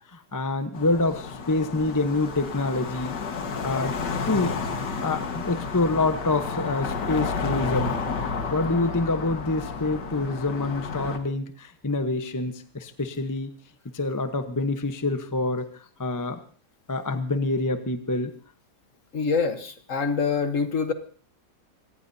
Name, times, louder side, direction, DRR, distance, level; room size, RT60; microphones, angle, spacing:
voice 1, 0.1-3.2 3.6-4.0 4.3-4.6 5.0-7.9 8.5-13.5 13.9-15.7 16.0-16.4 16.9-18.3, left 2 dB, 15° left, 8 dB, 0.7 m, -26 dB
sound 1, 0.7-11.2, left 5 dB, 75° left, 2.2 m, -31 dB
voice 2, 19.1-20.9, left 5 dB, 50° left, 8 dB, 1.5 m, -25 dB
26.0 x 17.5 x 2.8 m, 0.42 s
omnidirectional pair, 1.9 m